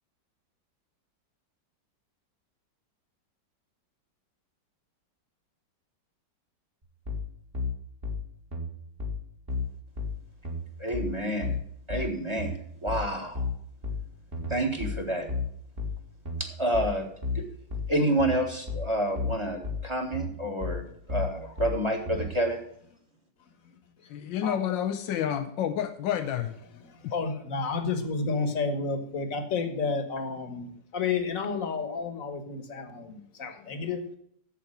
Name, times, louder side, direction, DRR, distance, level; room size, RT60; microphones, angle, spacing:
sound 1, 7.1-22.3, left 4 dB, 30° right, 2.0 m, -33 dB
voice 1, 10.8-11.5 11.9-13.4 14.5-15.3 16.4-17.1 17.3-17.4 17.9-22.6, right 1 dB, 15° right, 4 dB, 1.6 m, -29 dB
voice 2, 23.4-24.6 26.6-34.2, left 4 dB, 50° left, 8 dB, 1.6 m, -32 dB
voice 3, 24.1-26.6, left 10 dB, 90° left, 8 dB, 1.5 m, -29 dB
8.4 x 7.6 x 6.6 m, 0.67 s
omnidirectional pair, 1.9 m